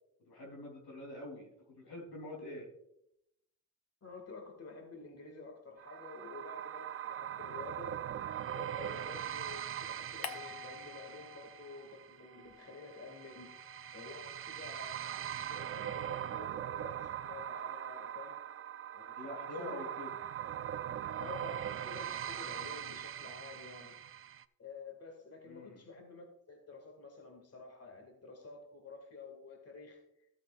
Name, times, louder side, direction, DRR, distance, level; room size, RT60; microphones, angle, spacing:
voice 1, 0.2-2.7 9.2-9.3 19.2-20.1 25.5-25.8, left 1 dB, 85° left, 0 dB, 3.6 m, -46 dB
voice 2, 4.0-8.0 8.5-13.5 13.9-18.4 18.9-19.9 21.2-24.0 24.6-30.0, left 3 dB, 40° left, 3 dB, 2.3 m, -50 dB
sound 1, 5.8-24.4, right 10 dB, 35° right, 0.4 m, -41 dB
sound 2, 10.2-11.9 12.2-14.7, left 9 dB, 65° left, 0.8 m, -50 dB
14.0 x 8.2 x 2.5 m, 0.79 s
cardioid pair, 90°, 38 cm